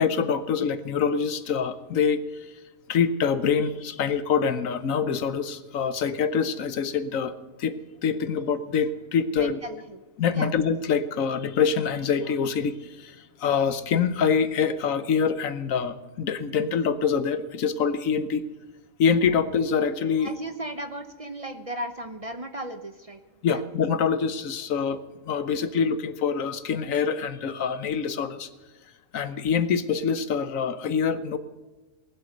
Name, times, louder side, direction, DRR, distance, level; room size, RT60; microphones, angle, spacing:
voice 1, 0.0-2.2 2.9-7.3 7.6-7.8 8.0-9.6 10.2-18.4 19.0-20.3 23.4-28.5 29.1-31.4, left 6 dB, 85° left, 12 dB, 1.3 m, -25 dB
voice 2, 9.4-10.0 10.3-10.5 20.2-23.2 23.5-23.6, right 1 dB, 35° right, 8 dB, 0.7 m, -36 dB
19.0 x 8.0 x 6.5 m, 1.2 s
omnidirectional pair, 1.4 m